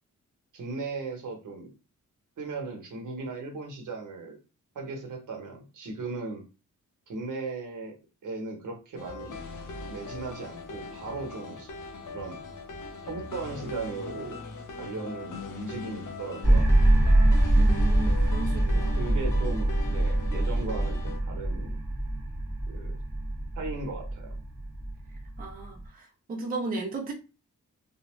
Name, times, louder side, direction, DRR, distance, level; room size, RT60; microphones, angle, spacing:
voice 1, 0.5-1.7 2.4-4.4 4.7-6.4 7.1-7.9 8.2-9.4 9.9-11.7 12.1-12.4 13.0-14.4 14.8-16.7 19.0-21.8 22.7-22.9 23.6-24.3, right 3 dB, 75° right, 0.9 m, -37 dB
sound 1, 9.0-21.2, left 4 dB, 75° left, 0.6 m, -40 dB
sound 2, 16.4-25.8, right 1 dB, 5° right, 0.8 m, -24 dB
voice 2, 17.6-19.0 25.4-27.1, right 2 dB, 30° right, 0.4 m, -35 dB
2.5 x 2.0 x 3.0 m
wide cardioid pair, 175°, 31 cm